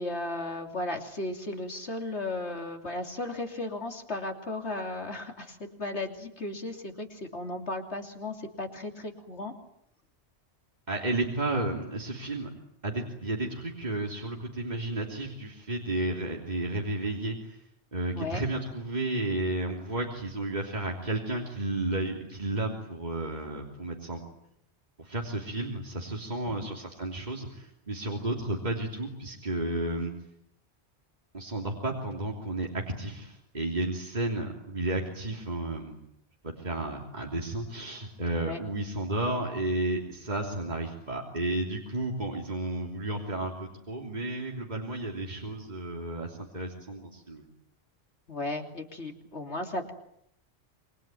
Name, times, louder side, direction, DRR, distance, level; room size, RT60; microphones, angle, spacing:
voice 1, 0.0-9.5 18.1-18.5 26.5-26.7 38.4-38.6 48.3-49.9, left 2 dB, 80° left, 4 dB, 3.3 m, -35 dB
voice 2, 10.9-12.5 12.8-17.6 17.9-24.2 25.0-30.1 31.3-36.0 36.4-47.5, right 2 dB, 40° right, 0 dB, 3.3 m, -32 dB
27.5 x 23.5 x 9.1 m, 0.75 s
omnidirectional pair, 1.1 m